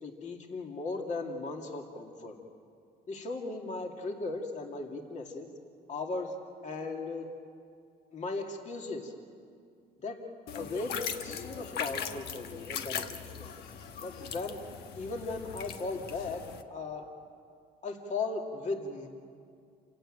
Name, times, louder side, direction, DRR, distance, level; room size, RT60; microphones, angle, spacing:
voice 1, 0.0-2.4 3.1-5.5 5.9-6.3 6.6-7.3 8.1-9.1 10.0-10.2 10.5-13.5 14.0-14.6 15.0-17.1 17.8-19.1, left 3 dB, 45° left, 2 dB, 2.5 m, -37 dB
sound 1, 10.5-16.6, left 7 dB, 75° left, 1.3 m, -40 dB
28.0 x 16.5 x 9.0 m, 2.3 s
cardioid pair, 110°, 17 cm